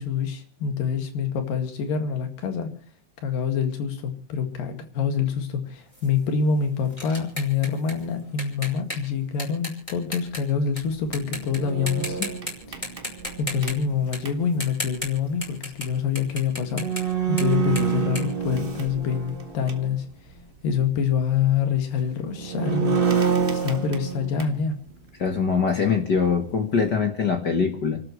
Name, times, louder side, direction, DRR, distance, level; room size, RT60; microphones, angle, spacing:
voice 1, 0.0-2.7 3.2-12.3 12.7-12.8 13.4-20.1 20.6-23.0 23.5-24.8, left 6 dB, 90° left, 6 dB, 3.8 m, -26 dB
sound 1, 5.9-10.8 11.1-11.6 11.9-12.5 12.8-15.9 16.1-19.2, equal, 10° left, 4.9 m, -35 dB
sound 2, 11.0-14.3 16.2-16.3 16.6-19.9 20.3-20.4 22.2-24.6, right 7 dB, 30° right, 1.0 m, -28 dB
voice 2, 25.2-28.0, left 5 dB, 55° left, 5 dB, 1.2 m, -23 dB
30.0 x 13.0 x 3.1 m, 0.43 s
omnidirectional pair, 3.8 m